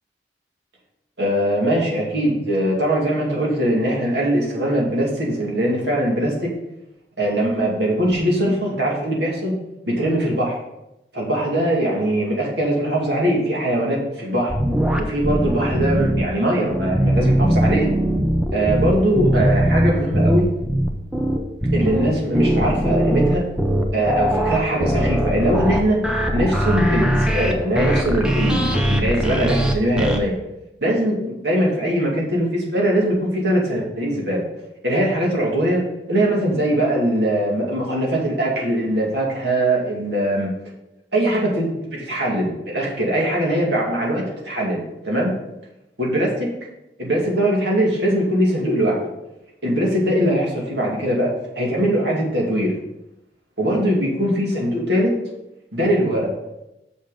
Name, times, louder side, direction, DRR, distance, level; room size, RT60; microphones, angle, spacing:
voice 1, 1.2-6.5 7.2-9.6 9.9-10.6 11.1-14.5 15.0-17.9 18.5-20.5 21.7-23.5 23.9-26.0 26.3-30.4 30.8-34.4 34.8-35.8 36.1-40.5 41.1-45.3 46.0-46.5 47.0-49.0 49.6-51.3 51.6-52.7 53.6-55.1 55.7-56.3, right 1 dB, 70° right, -3 dB, 2.3 m, -21 dB
sound 1, 14.5-16.2 16.7-30.2, right 1 dB, 5° right, 0.6 m, -20 dB
6.5 x 5.8 x 5.0 m, 0.90 s
head